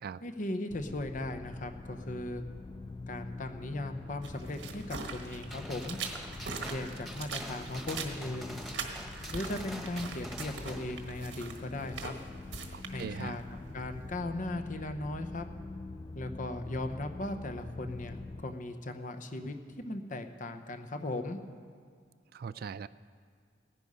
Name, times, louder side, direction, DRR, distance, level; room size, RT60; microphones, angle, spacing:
voice 1, 0.2-2.4 3.1-6.0 6.6-8.6 9.3-12.1 12.9-13.4 13.7-15.4 16.1-21.4, left 2 dB, 45° left, 7 dB, 0.8 m, -38 dB
sound 1, 0.7-18.4, left 3 dB, 25° left, 0.3 m, -45 dB
sound 2, 4.2-14.2, right 4 dB, 90° right, 1.3 m, -43 dB
Gunshot gunfire, 5.5-11.0, equal, ahead, 1.3 m, -46 dB
voice 2, 12.7-13.4 22.3-22.9, right 6 dB, 55° right, 16 dB, 0.3 m, -40 dB
17.0 x 9.9 x 5.5 m, 2.1 s
head